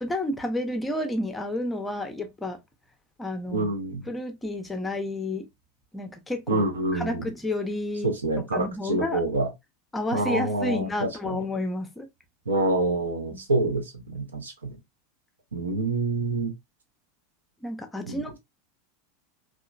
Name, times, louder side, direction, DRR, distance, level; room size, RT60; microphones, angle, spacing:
voice 1, 0.0-2.6 3.2-3.7 4.1-5.5 5.9-6.6 6.9-8.1 8.4-9.2 9.9-12.1 13.3-13.4 17.6-18.4, left 1 dB, 10° left, 0.5 m, -30 dB
voice 2, 3.5-4.0 6.5-7.3 8.0-9.5 10.1-11.3 12.5-14.8 15.5-16.5 18.1-18.2, right 2 dB, 75° right, 0.7 m, -27 dB
2.9 x 2.3 x 2.3 m
figure-of-eight pair, 85°, 0 cm